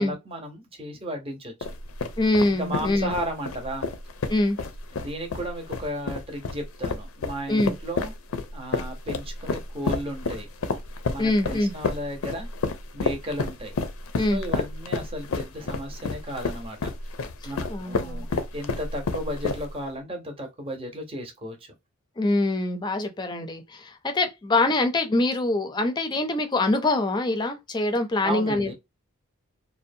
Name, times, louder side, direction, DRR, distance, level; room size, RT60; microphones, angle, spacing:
voice 1, 0.0-1.5 2.6-3.9 4.9-8.1 8.5-10.5 11.1-12.5 12.9-13.8 14.2-16.9 17.4-21.6 28.2-28.7, equal, 25° right, 0.7 m, -34 dB
sound 1, 1.6-19.9, left 4 dB, 80° left, 0.5 m, -30 dB
voice 2, 2.2-3.1 4.3-4.6 7.5-7.7 11.2-11.7 14.2-14.4 17.4-18.2 22.2-28.7, left 2 dB, 20° left, 0.5 m, -24 dB
2.6 x 2.1 x 2.6 m
head